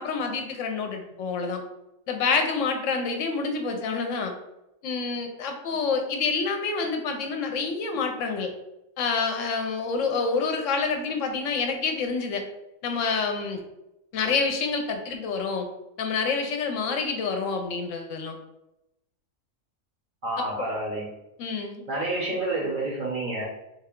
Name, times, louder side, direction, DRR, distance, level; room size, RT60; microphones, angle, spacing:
voice 1, 0.0-1.6 2.1-4.3 4.8-8.5 9.0-12.4 12.8-13.6 14.1-15.7 16.0-18.4 20.6-20.7 21.4-21.8, left 4 dB, 75° left, 4 dB, 0.9 m, -27 dB
voice 2, 20.2-21.1 21.9-23.4, right 2 dB, 50° right, -3 dB, 0.7 m, -29 dB
3.7 x 2.2 x 3.6 m, 0.91 s
omnidirectional pair, 1.4 m